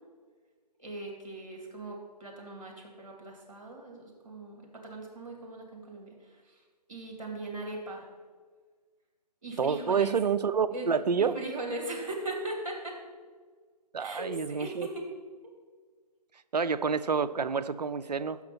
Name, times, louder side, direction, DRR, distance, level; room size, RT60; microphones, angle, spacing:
voice 1, 0.8-6.6 6.9-8.0 9.4-10.2 10.7-10.9 11.2-13.0 14.0-15.1, right 2 dB, 50° right, 0 dB, 2.4 m, -39 dB
voice 2, 9.6-11.3 13.9-14.9 16.5-18.4, right 6 dB, 75° right, 12 dB, 0.4 m, -28 dB
6.3 x 5.8 x 5.8 m, 1.5 s
figure-of-eight pair, 145°, 21 cm